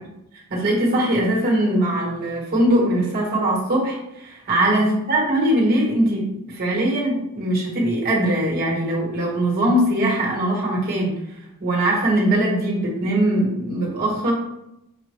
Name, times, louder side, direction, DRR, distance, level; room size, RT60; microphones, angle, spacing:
voice 1, 0.5-11.1 11.6-14.3, right 1 dB, 45° right, -3 dB, 1.5 m, -21 dB
6.5 x 2.5 x 3.2 m, 0.87 s
head